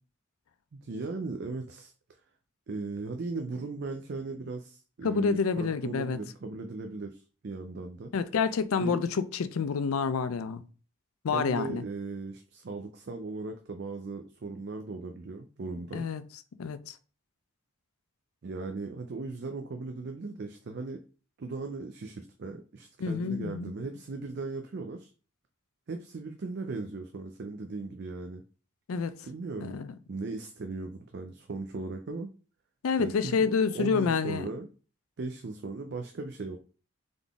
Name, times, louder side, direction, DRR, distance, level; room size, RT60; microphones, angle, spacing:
voice 1, 0.7-1.9 2.7-8.1 8.8-9.0 11.3-16.1 18.4-21.0 21.4-25.1 25.9-28.4 29.2-32.3 33.0-34.7 35.2-36.6, right 3 dB, 50° right, 0.4 m, -38 dB
voice 2, 5.0-6.2 8.1-10.6 11.2-11.8 15.9-16.2 16.6-16.9 23.0-23.6 28.9-29.1 29.6-29.9 32.8-34.5, left 5 dB, 80° left, 0.4 m, -28 dB
3.9 x 3.7 x 3.5 m
head